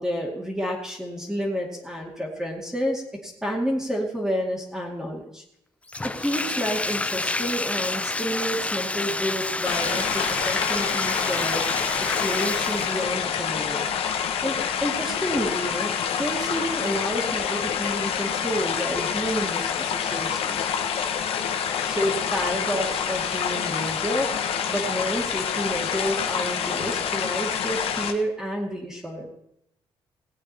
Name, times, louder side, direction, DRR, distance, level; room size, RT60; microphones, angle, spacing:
voice 1, 0.0-5.4 6.0-13.9 14.4-20.7 21.9-29.3, equal, 5° right, -1 dB, 2.3 m, -30 dB
Bathtub (filling or washing), 5.9-13.1, left 2 dB, 15° left, 0.4 m, -28 dB
sound 1, 9.6-28.1, left 8 dB, 80° left, 1.2 m, -27 dB
18.0 x 8.4 x 4.3 m, 0.75 s
cardioid pair, 110°, 10 cm